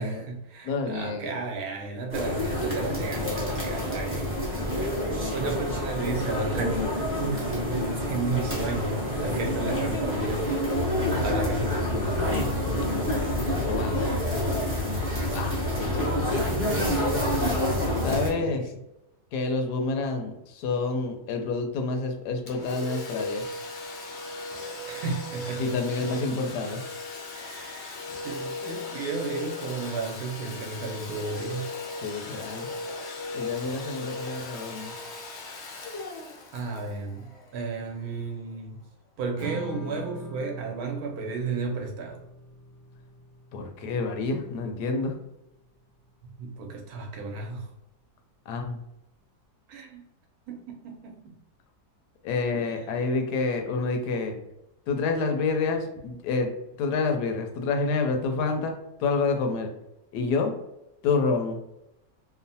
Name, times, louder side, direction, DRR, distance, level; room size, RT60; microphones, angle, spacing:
voice 1, 0.0-4.9 5.3-10.8 11.0-12.3 16.3-16.6 18.2-18.7 24.9-26.1 27.3-31.7 36.5-38.8 39.2-42.2 46.2-47.7 49.7-50.0 50.5-51.4 52.5-52.9, right 3 dB, 75° right, 2 dB, 1.0 m, -34 dB
voice 2, 0.6-1.3 13.7-14.1 15.3-17.1 18.0-18.7 19.3-23.4 25.6-26.8 32.0-32.7 33.3-34.9 43.5-45.2 48.5-48.8 52.2-54.4 54.9-56.5 56.8-58.7 59.0-59.7 60.1-60.5 61.0-61.6, left 4 dB, 80° left, 4 dB, 1.1 m, -28 dB
sound 1, 2.1-18.3, left 1 dB, 15° right, 0.5 m, -27 dB
Domestic sounds home sounds, 22.5-37.9, left 3 dB, 65° left, 0.6 m, -37 dB
Strum, 39.4-45.6, right 2 dB, 50° right, 1.0 m, -43 dB
3.0 x 2.1 x 2.7 m, 0.87 s
omnidirectional pair, 1.7 m